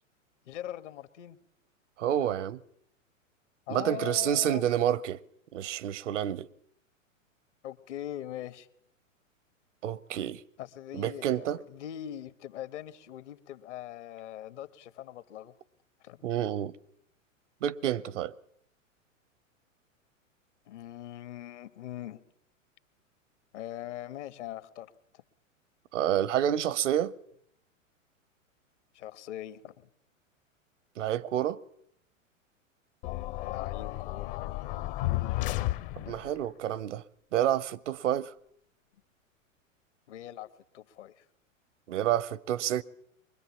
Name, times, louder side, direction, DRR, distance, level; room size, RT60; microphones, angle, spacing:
voice 1, 0.4-1.4 3.7-4.7 7.6-8.7 10.6-15.5 16.0-16.3 20.7-22.2 23.5-24.9 28.9-29.9 33.5-34.5 40.1-40.5 40.7-41.2, left 12 dB, 60° left, 1.4 m, -41 dB
voice 2, 2.0-2.6 3.7-5.2 5.5-6.5 9.8-10.4 10.9-11.6 16.2-16.7 17.6-18.4 25.9-27.1 31.0-31.6 36.0-37.0 37.3-38.3 41.9-42.8, right 11 dB, 65° right, 0.8 m, -29 dB
sound 1, 33.0-36.4, left 16 dB, 45° left, 0.9 m, -33 dB
23.5 x 21.5 x 7.2 m
figure-of-eight pair, 105°, 40 cm